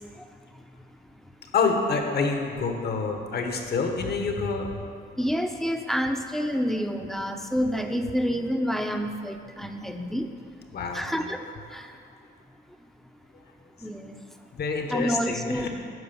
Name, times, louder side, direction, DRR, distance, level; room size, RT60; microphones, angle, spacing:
voice 1, 1.5-4.7 10.7-11.0 14.5-15.7, left 4 dB, 55° left, 4 dB, 1.3 m, -27 dB
voice 2, 5.2-10.3 10.9-11.4 11.7-11.9 13.8-14.1 14.9-15.7, equal, ahead, 5 dB, 0.7 m, -28 dB
9.5 x 5.0 x 7.0 m, 2.4 s
cardioid pair, 90°, 20 cm